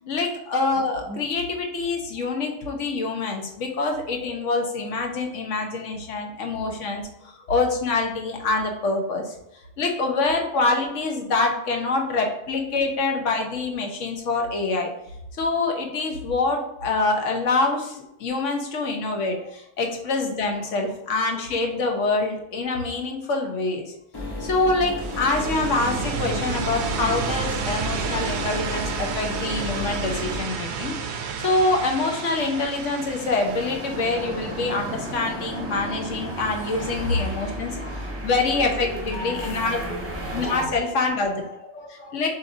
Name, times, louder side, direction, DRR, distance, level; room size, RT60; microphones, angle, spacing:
voice 1, 0.1-7.0 7.5-9.3 9.8-14.9 15.4-23.9 24.4-37.8 38.2-39.9 40.3-41.4 41.9-42.3, left 3 dB, 90° left, 2 dB, 1.2 m, -25 dB
voice 2, 19.1-19.5 20.5-22.3 24.1-24.2 29.4-29.5 32.1-32.3 34.6-34.7 36.8-38.1 38.4-41.1 41.4-42.3, left 1 dB, 45° left, -2 dB, 1.2 m, -42 dB
sound 1, 24.1-30.4, left 2 dB, 25° left, 0.6 m, -33 dB
sound 2, 25.0-35.7, right 6 dB, 70° right, 0.8 m, -31 dB
sound 3, 32.4-40.6, right 1 dB, 15° right, 0.7 m, -34 dB
6.9 x 2.7 x 2.6 m, 0.82 s
omnidirectional pair, 1.2 m